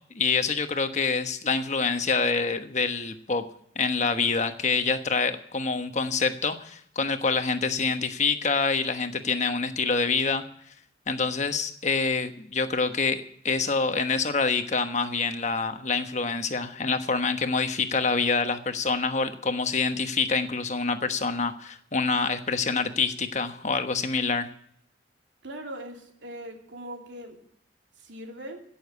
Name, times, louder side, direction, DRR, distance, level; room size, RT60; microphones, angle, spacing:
voice 1, 0.1-3.4 3.7-10.4 11.1-24.5, left 4 dB, 40° left, 8 dB, 1.2 m, -26 dB
voice 2, 25.4-27.4 28.0-28.6, right 1 dB, 85° right, 2 dB, 2.9 m, -40 dB
16.5 x 7.1 x 8.2 m, 0.68 s
head